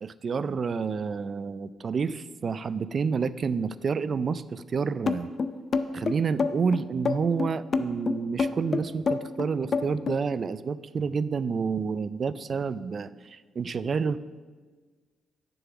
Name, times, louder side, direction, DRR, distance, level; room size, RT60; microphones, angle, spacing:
voice 1, 0.0-5.3 5.9-14.2, right 5 dB, 45° right, 16 dB, 0.4 m, -29 dB
sound 1, 5.1-10.2, left 4 dB, 40° left, 0.5 m, -27 dB
7.4 x 7.0 x 6.0 m, 1.4 s
cardioid pair, 90°, 0 cm